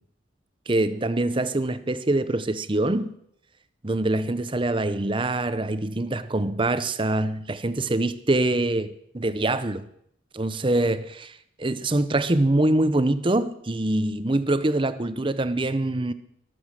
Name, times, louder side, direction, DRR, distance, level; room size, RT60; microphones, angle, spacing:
voice 1, 0.7-3.1 3.8-9.8 10.3-16.1, right 2 dB, 25° right, 0.7 m, -24 dB
23.0 x 7.9 x 6.4 m
head